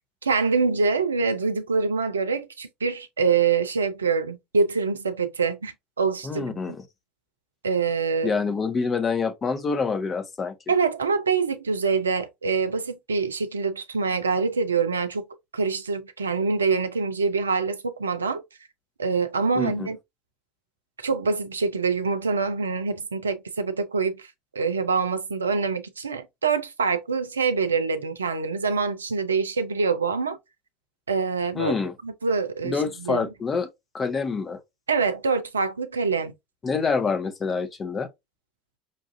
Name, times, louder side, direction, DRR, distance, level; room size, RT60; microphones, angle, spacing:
voice 1, 0.2-6.6 7.6-8.3 10.7-15.2 15.5-18.4 19.0-20.0 21.0-24.3 24.5-30.4 31.1-31.7 32.0-33.3 34.9-36.3, right 4 dB, 85° right, 0.5 m, -25 dB
voice 2, 6.2-6.8 8.2-10.5 19.6-19.9 31.5-31.9 32.6-33.7 33.9-34.6 36.6-38.1, left 5 dB, 30° left, 0.9 m, -26 dB
5.3 x 2.5 x 2.5 m
figure-of-eight pair, 65°, 0 cm